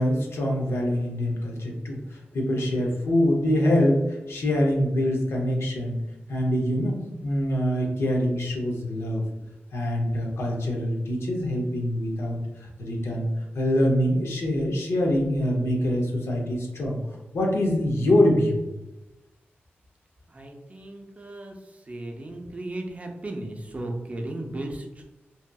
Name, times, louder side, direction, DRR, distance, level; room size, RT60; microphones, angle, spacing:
voice 1, 0.0-6.0 6.3-9.2 9.7-17.0 17.3-18.6, left 1 dB, 85° left, 0 dB, 0.6 m, -24 dB
voice 2, 20.3-25.0, right 1 dB, 35° right, 2 dB, 0.5 m, -36 dB
2.7 x 2.5 x 2.2 m, 1.0 s
wide cardioid pair, 95°, 4 cm